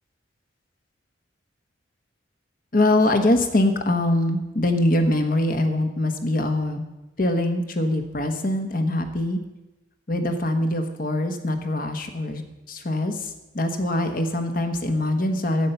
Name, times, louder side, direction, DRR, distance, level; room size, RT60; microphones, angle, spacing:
voice 1, 2.7-6.8 7.2-9.4 10.1-12.4 12.7-15.7, left 1 dB, 45° left, 6 dB, 1.1 m, -23 dB
10.0 x 6.8 x 9.0 m, 1.0 s
head